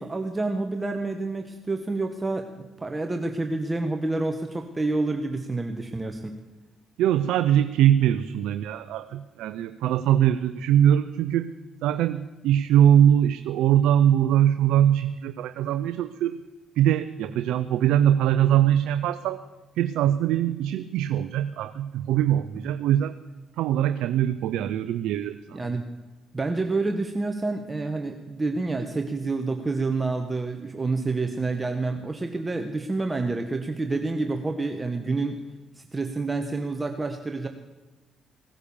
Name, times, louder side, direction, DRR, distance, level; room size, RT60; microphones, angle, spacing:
voice 1, 0.0-6.3 25.5-25.8 26.3-35.4 35.8-37.5, right 3 dB, 20° right, 5 dB, 1.2 m, -28 dB
voice 2, 7.0-11.5 11.8-16.4 16.8-19.4 19.8-23.2 23.6-25.6, right 10 dB, 80° right, 11 dB, 0.6 m, -22 dB
18.0 x 9.8 x 7.1 m, 1.2 s
supercardioid pair, 70°, 0 cm